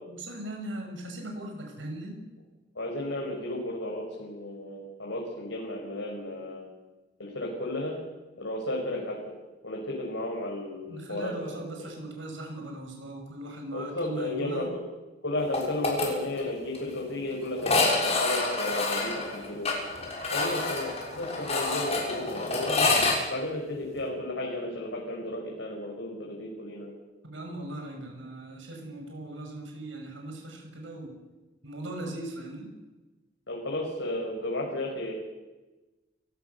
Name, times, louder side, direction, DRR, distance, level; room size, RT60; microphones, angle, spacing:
voice 1, 0.1-2.2 10.9-14.7 27.3-31.2 31.6-32.7, right 1 dB, 90° right, 2 dB, 6.6 m, -39 dB
voice 2, 2.8-6.7 7.2-8.0 8.4-9.2 9.6-11.9 13.7-14.8 15.2-19.7 20.3-22.9 23.3-26.9 33.5-35.1, left 1 dB, 85° left, -2 dB, 5.6 m, -33 dB
sound 1, 15.5-16.1 16.4-16.5 16.7-16.8 17.6-23.2, left 3 dB, 35° left, 6.5 m, -27 dB
29.5 x 17.0 x 7.1 m, 1.2 s
head